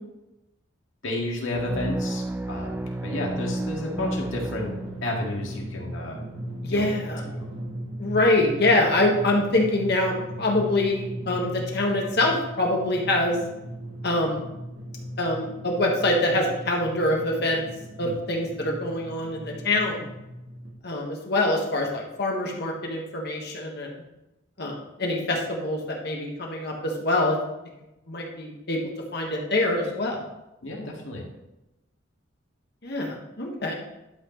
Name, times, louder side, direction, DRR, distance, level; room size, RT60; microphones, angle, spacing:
voice 1, 1.0-2.2 2.5-6.2 6.7-6.9 7.3-7.5 18.0-18.1 30.6-31.2, left 1 dB, 90° left, -1 dB, 2.0 m, -31 dB
sound 1, 1.5-5.4, right 1 dB, 10° right, 0.3 m, -32 dB
Drum, 4.5-20.7, equal, 65° right, 1.8 m, -38 dB
voice 2, 6.6-7.2 8.0-13.4 14.0-14.4 15.2-17.6 18.0-20.1 20.8-24.0 24.6-27.4 28.1-28.8 29.1-30.2 32.8-33.7, left 2 dB, 60° left, 0 dB, 1.5 m, -25 dB
11.5 x 5.9 x 3.2 m, 0.93 s
head